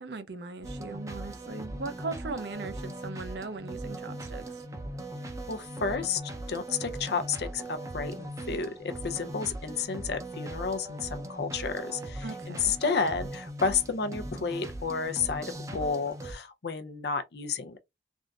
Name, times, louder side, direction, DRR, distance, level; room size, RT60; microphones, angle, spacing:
voice 1, 0.0-4.5 12.2-12.8, right 3 dB, 65° right, 0.6 m, -39 dB
sound 1, 0.6-16.3, right 1 dB, 20° right, 0.5 m, -39 dB
voice 2, 5.5-6.2 6.5-15.5 15.7-17.8, left 5 dB, 60° left, 0.5 m, -31 dB
3.5 x 2.6 x 2.4 m
head